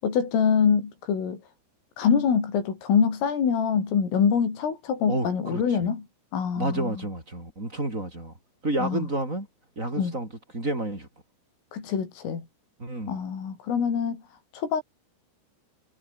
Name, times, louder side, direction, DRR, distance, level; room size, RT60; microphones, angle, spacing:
voice 1, 0.0-1.4 2.0-6.1 6.3-7.0 8.8-9.1 10.0-10.1 11.7-12.5 13.1-14.2 14.5-14.8, left 7 dB, 75° left, 7.7 m, -25 dB
voice 2, 5.1-5.6 6.6-8.3 8.6-9.5 9.8-10.3 10.5-11.1 12.8-13.2, right 1 dB, 15° right, 6.3 m, -30 dB
omnidirectional pair, 5.9 m